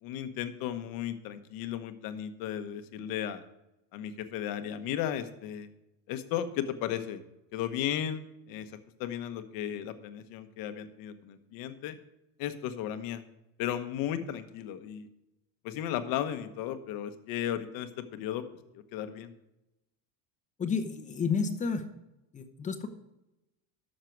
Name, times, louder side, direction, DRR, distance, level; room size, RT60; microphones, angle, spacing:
voice 1, 0.0-3.4 3.9-5.7 6.1-7.2 7.5-8.2 8.5-8.7 9.0-12.0 12.4-13.2 13.6-15.1 15.6-18.4 18.7-19.3, left 10 dB, 60° left, 9 dB, 1.1 m, -35 dB
voice 2, 20.6-21.9 22.3-22.9, left 5 dB, 20° left, 8 dB, 0.8 m, -31 dB
13.0 x 6.6 x 4.6 m, 0.92 s
cardioid pair, 165°, 40 cm